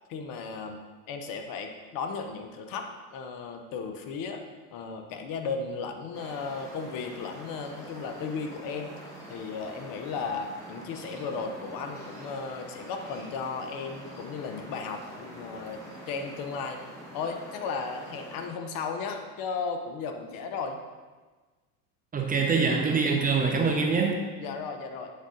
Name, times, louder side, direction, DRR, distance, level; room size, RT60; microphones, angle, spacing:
voice 1, 0.1-0.8 1.1-2.9 3.1-4.4 4.7-8.9 9.3-15.8 16.1-16.8 17.1-20.8 24.4-25.1, left 5 dB, 50° left, 5 dB, 0.8 m, -35 dB
sound 1, 6.1-18.5, right 1 dB, 5° left, 1.6 m, -45 dB
voice 2, 22.1-24.2, right 4 dB, 20° right, 1 dB, 0.6 m, -24 dB
7.3 x 3.7 x 3.8 m, 1.3 s
hypercardioid pair, 90°, 46 cm